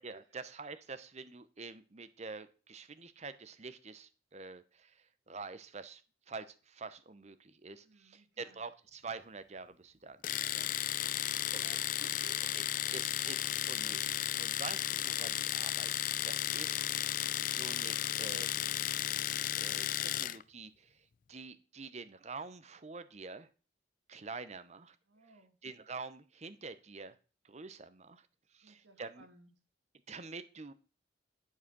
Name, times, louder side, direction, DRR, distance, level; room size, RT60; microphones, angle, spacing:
voice 1, 0.0-6.0 6.3-10.2 10.5-11.3 12.6-12.7 12.9-18.7 19.5-23.5 24.1-25.0 25.6-27.2 27.4-29.3 30.1-30.7, right 4 dB, 35° right, 14 dB, 0.7 m, -47 dB
voice 2, 7.8-8.6 10.8-12.4 12.7-13.0 25.1-25.6 28.6-29.5, right 2 dB, 75° right, 5 dB, 2.1 m, -59 dB
Domestic sounds home sounds, 10.2-20.4, left 12 dB, 45° left, 0.4 m, -34 dB
11.0 x 4.8 x 6.1 m, 0.36 s
head